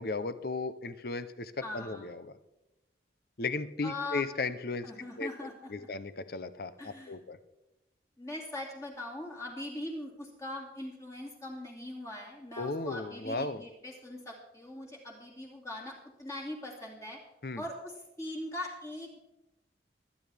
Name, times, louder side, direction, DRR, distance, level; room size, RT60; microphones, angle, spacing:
voice 1, 0.0-2.3 3.4-4.9 5.2-7.4 12.6-13.6 17.4-17.6, left 3 dB, 55° left, 13 dB, 0.7 m, -36 dB
voice 2, 1.6-2.1 3.8-4.3 4.8-5.9 6.8-7.2 8.2-17.2 17.6-19.2, left 1 dB, 15° left, -3 dB, 2.5 m, -41 dB
23.0 x 9.4 x 3.5 m, 0.96 s
head